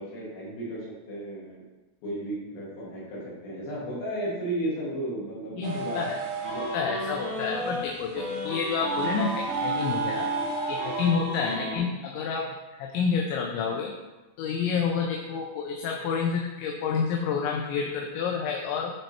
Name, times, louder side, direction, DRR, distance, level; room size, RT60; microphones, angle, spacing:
voice 1, 0.0-1.6 2.0-6.1 11.4-11.8, right 1 dB, 55° left, -6 dB, 3.8 m, -34 dB
voice 2, 5.6-6.1 6.6-10.3 10.7-13.9 14.4-18.9, left 6 dB, 80° left, 1 dB, 2.8 m, -29 dB
sound 1, 5.6-11.6, right 4 dB, 75° right, 2.3 m, -37 dB
sound 2, 6.4-7.8 8.2-11.8, right 1 dB, 35° right, 2.6 m, -32 dB
10.0 x 4.5 x 4.3 m, 1.1 s
omnidirectional pair, 5.7 m